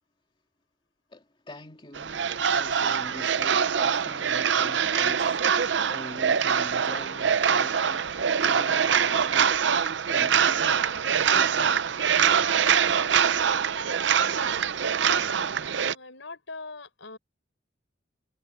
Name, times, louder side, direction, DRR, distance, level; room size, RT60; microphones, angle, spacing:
voice 1, 1.1-8.1 8.4-9.6 10.1-10.7 11.2-11.9, left 1 dB, 25° left, 2.7 m, -44 dB
sound 1, 2.0-15.9, right 7 dB, 70° right, 0.6 m, -24 dB
voice 2, 15.7-17.2, left 3 dB, 90° left, 5.4 m, -42 dB
head